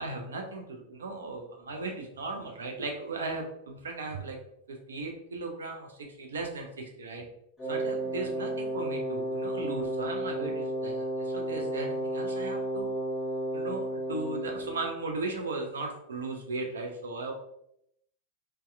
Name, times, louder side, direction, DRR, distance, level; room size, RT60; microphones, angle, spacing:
voice 1, 0.0-4.4 4.7-5.9 6.2-7.2 7.7-12.9 13.5-17.3, right 3 dB, 65° right, 2 dB, 0.5 m, -37 dB
Wind instrument woodwind instrument, 7.6-14.9, right 1 dB, 10° left, 0.9 m, -32 dB
4.1 x 2.2 x 2.2 m, 0.75 s
figure-of-eight pair, 90°, 0 cm